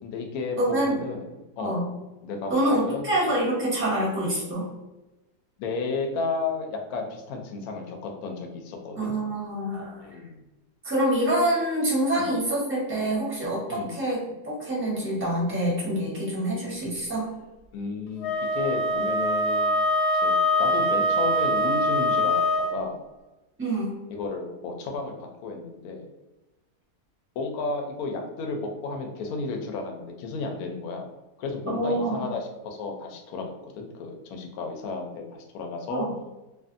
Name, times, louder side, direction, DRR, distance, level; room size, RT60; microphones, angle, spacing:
voice 1, 0.0-1.2 1.6-1.9 2.2-3.1 5.6-9.2 10.0-10.4 12.2-12.3 13.7-13.9 17.7-19.9 20.1-20.3 20.6-23.0 24.1-26.1 27.4-31.1 31.4-36.1, left 3 dB, 70° left, 3 dB, 1.0 m, -33 dB
voice 2, 0.6-1.0 1.6-1.9 2.5-4.7 9.0-10.0 10.8-14.2 14.4-17.3 23.6-24.0 31.7-32.3 35.9-36.1, right 1 dB, 10° right, -6 dB, 0.7 m, -26 dB
Wind instrument woodwind instrument, 18.2-22.8, left 1 dB, 85° left, 1.2 m, -23 dB
2.5 x 2.4 x 2.5 m, 1.1 s
omnidirectional pair, 1.7 m